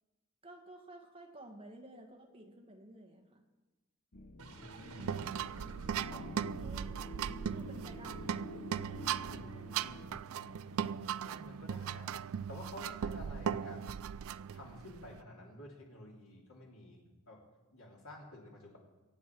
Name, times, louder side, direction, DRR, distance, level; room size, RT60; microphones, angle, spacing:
voice 1, 0.4-3.4 6.1-6.9 7.5-8.4, right 1 dB, 25° right, 2 dB, 1.7 m, -53 dB
sound 1, 4.1-10.1, left 2 dB, 50° left, 0.8 m, -49 dB
sound 2, 4.4-10.9, right 2 dB, 85° right, 1.5 m, -54 dB
voice 2, 4.5-5.3 6.1-6.3 9.2-10.2 11.2-14.0 14.5-17.4 17.7-18.8, left 1 dB, 70° left, -1 dB, 3.1 m, -52 dB
sound 3, 5.0-15.2, right 8 dB, 65° right, 0.4 m, -38 dB
23.5 x 8.4 x 4.7 m, 1.2 s
head